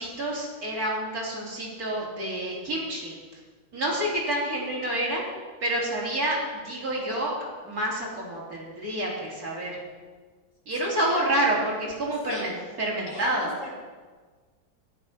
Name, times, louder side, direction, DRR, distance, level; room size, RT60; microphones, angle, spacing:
voice 1, 0.0-3.1 3.7-5.2 5.6-7.3 7.6-9.8 10.7-13.5, right 1 dB, 50° right, -4 dB, 3.9 m, -28 dB
voice 2, 10.8-11.2 12.3-12.5 13.1-13.8, left 2 dB, 85° left, -1 dB, 4.0 m, -40 dB
14.0 x 11.0 x 5.8 m, 1.4 s
omnidirectional pair, 2.1 m